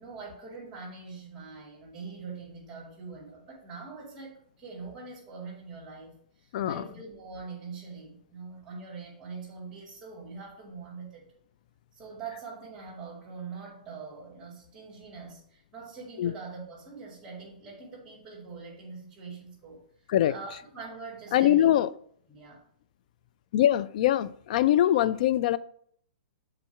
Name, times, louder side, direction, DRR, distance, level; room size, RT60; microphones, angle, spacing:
voice 1, 0.0-11.3 11.9-19.8 20.3-21.7 22.3-22.7, right 4 dB, 15° right, 2.2 m, -43 dB
voice 2, 6.5-6.8 16.2-16.3 20.1-20.3 21.3-21.9 23.5-25.6, left 12 dB, 60° left, 0.3 m, -23 dB
7.0 x 3.9 x 4.5 m
hypercardioid pair, 130°, 5 cm